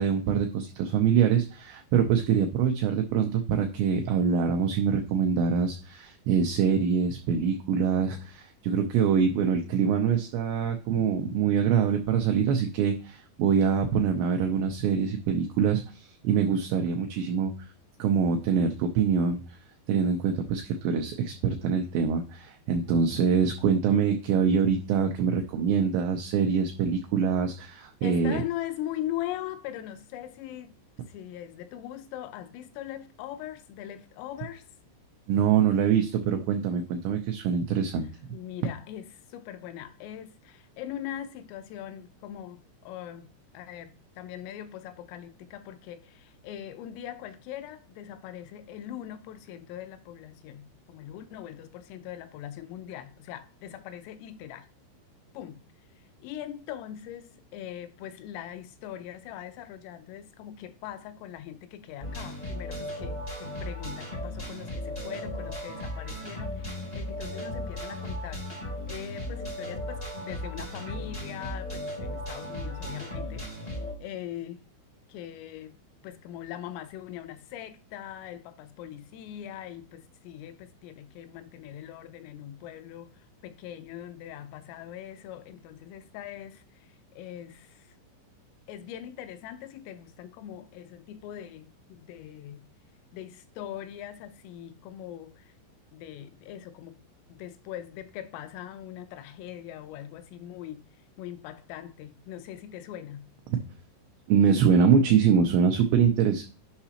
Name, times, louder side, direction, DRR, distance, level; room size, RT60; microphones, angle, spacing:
voice 1, 0.0-17.7 18.0-19.6 19.9-28.4 35.3-38.1 104.3-106.4, right 7 dB, 90° right, 2.5 m, -24 dB
voice 2, 28.0-30.8 31.1-34.6 38.3-54.7 55.3-55.6 56.0-74.6 75.1-75.8 76.0-88.0 88.7-92.6 93.1-95.5 95.9-97.0 97.3-100.9 101.2-103.3, left 11 dB, 85° left, 3.2 m, -41 dB
sound 1, 62.0-73.9, left 1 dB, 65° left, 0.4 m, -36 dB
11.0 x 5.7 x 2.8 m
omnidirectional pair, 5.8 m